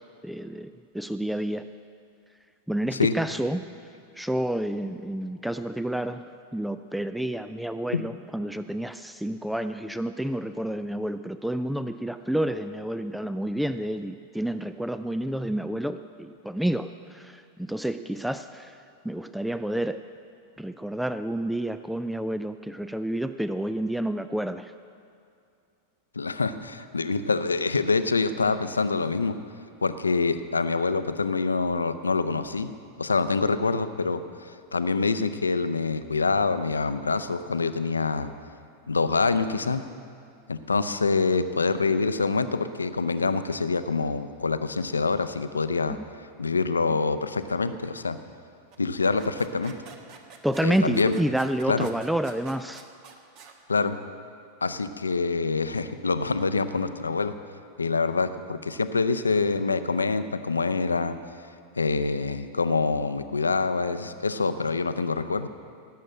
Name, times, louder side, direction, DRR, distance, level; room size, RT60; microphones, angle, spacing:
voice 1, 0.0-1.7 2.7-3.6 4.2-6.2 6.5-18.8 19.0-20.0 20.6-24.7 46.0-46.1 50.4-52.8, right 1 dB, ahead, 11 dB, 0.3 m, -29 dB
voice 2, 26.1-29.4 29.8-32.7 33.0-38.3 38.9-39.8 40.5-46.0 46.4-48.2 48.8-49.8 50.6-51.2 51.7-51.9 53.7-54.0 54.6-57.3 57.8-61.2 61.8-65.5, left 4 dB, 75° left, 11 dB, 0.6 m, -26 dB
sound 1, 48.7-53.6, right 5 dB, 40° right, 1.3 m, -48 dB
18.0 x 7.5 x 7.7 m, 2.5 s
figure-of-eight pair, 90°, 0 cm